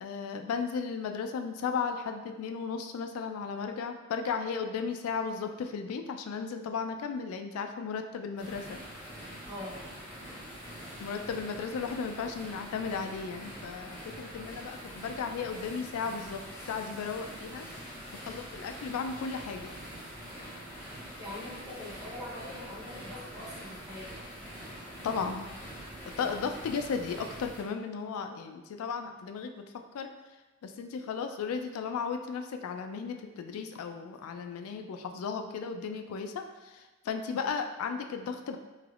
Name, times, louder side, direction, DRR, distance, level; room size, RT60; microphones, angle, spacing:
voice 1, 0.0-8.8 11.0-16.4 16.7-17.7 18.3-19.7 20.4-20.5 25.0-25.5 26.2-29.6 29.9-30.1 30.6-38.6, left 5 dB, 85° left, 7 dB, 0.3 m, -35 dB
sound 1, 8.4-27.6, equal, 10° left, 1.2 m, -44 dB
voice 2, 9.4-9.8 17.8-18.1 21.2-24.1 26.3-26.4 34.2-34.3, left 1 dB, 15° right, -9 dB, 1.0 m, -43 dB
3.2 x 3.0 x 2.4 m, 1.2 s
head